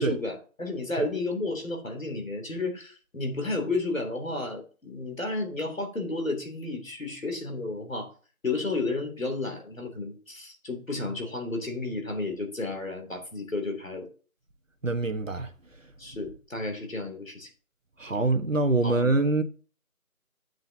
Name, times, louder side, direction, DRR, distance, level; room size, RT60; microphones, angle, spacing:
voice 1, 0.0-8.1 8.4-14.1 16.0-17.5 18.8-19.0, left 2 dB, 65° left, 3.0 m, -32 dB
voice 2, 14.8-15.5 18.0-19.4, right 3 dB, 60° right, 1.2 m, -25 dB
8.9 x 7.9 x 2.8 m
figure-of-eight pair, 175°, 43 cm